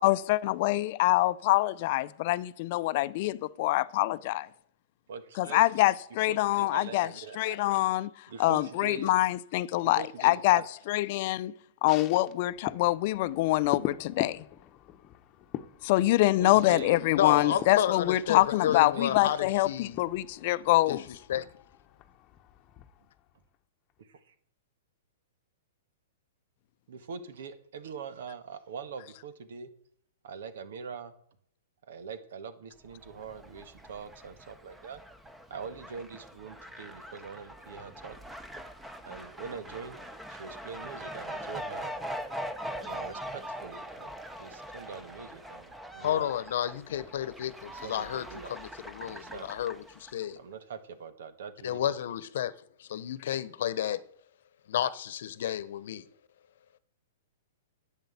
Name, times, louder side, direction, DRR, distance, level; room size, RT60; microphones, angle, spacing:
voice 1, 0.0-4.5 5.4-7.1 7.4-8.1 8.4-10.6 10.9-11.5 11.8-14.4 15.8-21.0, left 18 dB, 50° left, 0.6 m, -25 dB
voice 2, 5.1-5.9 6.3-7.6 8.3-9.1 9.8-10.7 16.4-17.0 17.2-17.6 18.7-19.4 24.0-24.3 26.9-29.7 30.2-31.1 31.9-35.0 35.5-38.2 39.0-40.0 40.3-41.9 42.8-44.1 44.4-46.3 47.7-48.6 49.0-49.5 50.4-52.2, right 5 dB, 70° right, 1.7 m, -43 dB
sound 1, 11.9-23.6 23.9-24.0, left 12 dB, 30° left, 1.1 m, -43 dB
voice 3, 17.1-20.0 20.9-21.0 21.3-21.5 46.0-50.4 51.6-52.5 52.8-54.0 54.7-56.0, left 10 dB, 65° left, 1.0 m, -31 dB
Fowl, 32.9-50.3, equal, 5° right, 1.1 m, -42 dB
10.5 x 8.2 x 8.2 m
hypercardioid pair, 130°, 0 cm